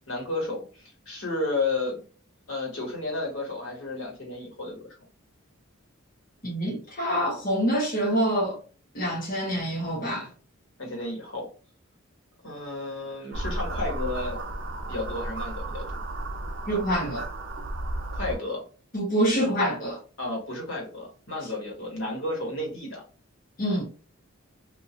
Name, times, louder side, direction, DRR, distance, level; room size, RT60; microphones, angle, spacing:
voice 1, 0.1-2.0 2.5-4.9 10.8-11.5 12.4-14.4 14.9-16.0 18.1-18.6 20.2-23.0, left 2 dB, 65° left, 1.4 m, -32 dB
voice 2, 6.4-8.6 8.9-10.3 16.7-17.2 18.9-20.0 23.6-23.8, equal, 40° left, 1.0 m, -26 dB
sound 1, 13.3-18.4, right 2 dB, 55° right, 0.6 m, -33 dB
2.9 x 2.6 x 2.4 m
head